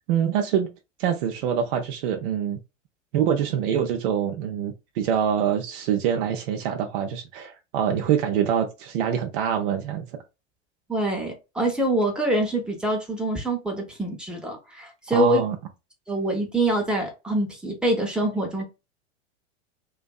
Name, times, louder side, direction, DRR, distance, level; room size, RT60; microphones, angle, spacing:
voice 1, 0.1-0.7 1.0-2.6 3.1-10.1 15.1-15.6, right 8 dB, 50° right, 0.5 m, -25 dB
voice 2, 10.9-15.4 16.1-18.6, right 1 dB, 5° right, 0.7 m, -25 dB
2.5 x 2.2 x 2.2 m
figure-of-eight pair, 95°, 35 cm